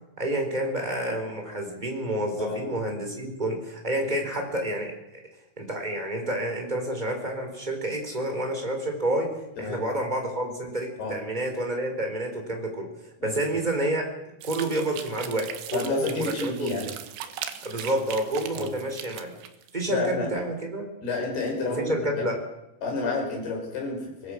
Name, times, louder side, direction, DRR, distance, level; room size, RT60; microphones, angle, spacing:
voice 1, 0.2-4.9 5.6-9.3 9.6-12.9 13.2-14.0 14.4-16.7 17.6-19.4 19.7-20.9 21.6-22.3, right 1 dB, 10° right, 2 dB, 3.4 m, -29 dB
sound 1, 14.4-19.8, right 10 dB, 70° right, 3.1 m, -39 dB
voice 2, 15.7-16.9 18.5-18.7 19.9-20.3 21.0-22.2 22.8-24.3, left 3 dB, 50° left, -1 dB, 7.7 m, -30 dB
24.0 x 20.0 x 6.4 m, 0.91 s
omnidirectional pair, 6.0 m